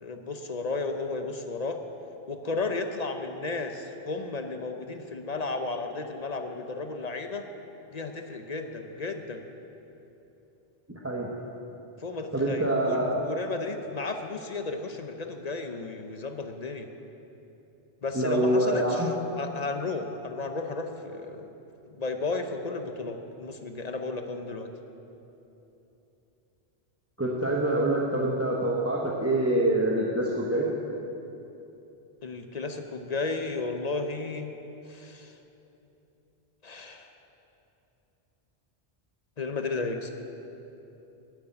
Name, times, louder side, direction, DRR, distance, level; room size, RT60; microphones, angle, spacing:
voice 1, 0.0-1.8 2.3-7.4 7.9-9.4 12.0-16.9 18.0-19.1 19.4-21.5 21.9-24.7 32.2-34.5 34.9-35.3 36.6-37.1 39.4-40.1, left 3 dB, 45° left, 6 dB, 0.7 m, -33 dB
voice 2, 12.3-13.3 18.1-19.1 27.2-30.7, right 1 dB, 15° right, -4 dB, 0.9 m, -25 dB
9.6 x 8.2 x 9.1 m, 3.0 s
omnidirectional pair, 1.0 m